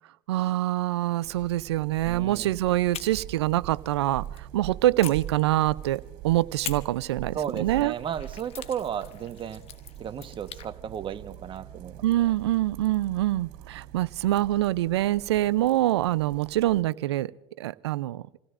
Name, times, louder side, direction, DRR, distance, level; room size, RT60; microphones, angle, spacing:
voice 1, 0.3-7.9 12.0-17.3 17.6-18.2, right 15 dB, 90° right, 19 dB, 0.5 m, -25 dB
sound 1, 1.2-16.8, right 13 dB, 65° right, 3.0 m, -43 dB
voice 2, 2.0-2.5 7.3-9.6 10.0-12.0, right 8 dB, 40° right, 10 dB, 1.2 m, -34 dB
sound 2, 2.9-4.5 5.0-6.0 6.6-10.7, left 10 dB, 45° left, 1.3 m, -43 dB
29.0 x 17.0 x 2.5 m, 1.0 s
hypercardioid pair, 85°, 13 cm